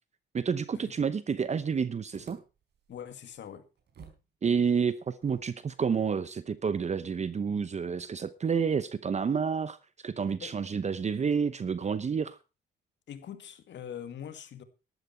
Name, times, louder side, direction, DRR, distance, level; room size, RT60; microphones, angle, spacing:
voice 1, 0.3-2.4 4.4-9.8 10.0-12.4, right 6 dB, 35° right, 0.8 m, -29 dB
sound 1, 2.1-4.3 4.5-4.6 5.2-8.3, right 6 dB, 60° right, 4.4 m, -56 dB
voice 2, 2.9-3.7 10.4-10.5 13.1-14.6, left 9 dB, 65° left, 2.1 m, -42 dB
12.5 x 12.0 x 4.4 m
cardioid pair, 90°, 20 cm